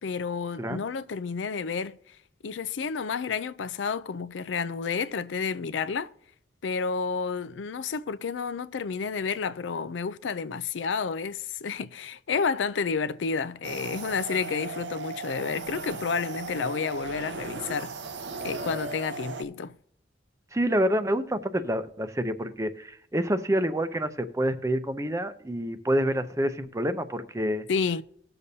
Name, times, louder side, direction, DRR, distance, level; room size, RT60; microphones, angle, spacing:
voice 1, 0.0-2.0 2.4-6.1 6.6-17.9 18.4-19.7 27.7-28.0, left 5 dB, 85° left, 0.4 m, -30 dB
sound 1, 13.6-19.4, right 3 dB, 75° right, 0.8 m, -37 dB
voice 2, 20.5-27.7, equal, 15° right, 0.6 m, -27 dB
19.5 x 6.8 x 2.8 m
head